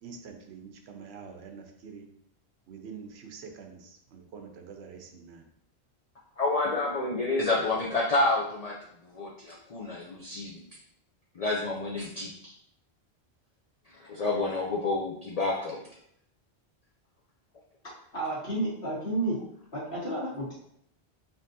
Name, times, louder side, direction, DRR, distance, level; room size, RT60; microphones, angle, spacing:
voice 1, 0.0-2.2 2.7-5.5, right 6 dB, 85° right, 5 dB, 0.9 m, -46 dB
voice 2, 6.4-8.7 9.0-10.6 11.3-12.5 14.0-15.8, left 2 dB, 45° left, -3 dB, 0.6 m, -29 dB
voice 3, 18.1-19.4 19.7-20.5, right 2 dB, 60° left, -7 dB, 1.8 m, -31 dB
5.1 x 2.9 x 2.7 m, 0.71 s
omnidirectional pair, 1.1 m